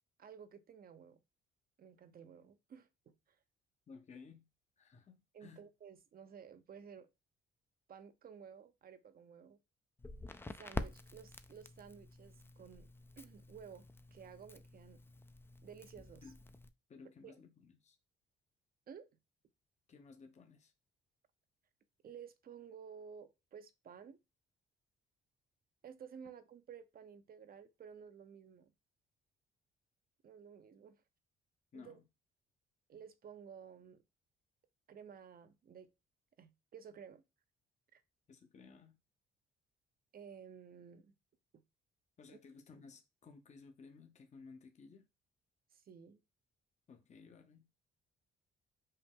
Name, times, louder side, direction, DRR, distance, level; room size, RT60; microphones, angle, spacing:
voice 1, 0.2-1.2 1.8-3.4 5.3-7.1 7.9-9.6 10.5-12.9 13.2-15.0 15.6-16.2 17.2-17.4 18.9-19.1 22.0-24.2 25.8-28.7 30.2-31.0 31.7-32.0 32.9-34.0 34.9-35.9 36.4-37.2 37.9-38.0 40.1-41.1 41.5-41.6 45.7-46.2, right 7 dB, 50° right, 0.7 m, -54 dB
voice 2, 3.9-4.5 4.8-5.7 16.2-16.4 16.9-18.0 19.9-20.7 31.7-32.0 38.3-39.0 42.2-45.0 46.9-47.7, left 4 dB, 35° left, 0.8 m, -57 dB
Crackle, 10.0-16.7, left 2 dB, 10° left, 0.4 m, -48 dB
5.5 x 2.1 x 3.5 m
cardioid pair, 90°, 20 cm